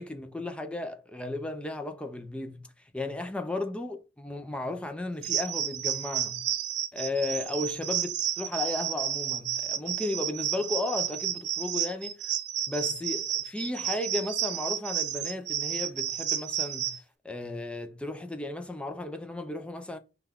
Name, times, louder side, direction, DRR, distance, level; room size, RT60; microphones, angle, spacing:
voice 1, 0.0-2.6 2.9-6.4 6.9-12.2 12.7-16.9 17.2-20.0, left 2 dB, 5° left, 0.4 m, -34 dB
sound 1, 5.2-17.0, right 10 dB, 70° right, 0.5 m, -31 dB
5.5 x 2.3 x 3.5 m
head